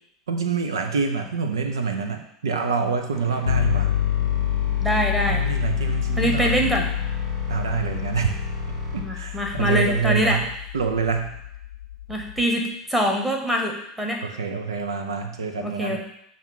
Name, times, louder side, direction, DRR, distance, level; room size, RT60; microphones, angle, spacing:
voice 1, 0.3-3.9 5.3-6.9 7.5-8.4 8.9-10.4 10.7-11.3 14.2-16.0, right 5 dB, 80° right, 5 dB, 0.5 m, -26 dB
sound 1, 3.1-9.0, equal, 60° right, 2.5 m, -36 dB
sound 2, 3.5-12.4, left 11 dB, 85° left, 0.4 m, -27 dB
voice 2, 4.8-5.4 6.2-6.8 9.0-10.4 12.1-14.2 15.6-16.0, equal, 5° right, 2 dB, 1.3 m, -24 dB
7.1 x 2.5 x 5.5 m, 0.75 s
hypercardioid pair, 80°, 2 cm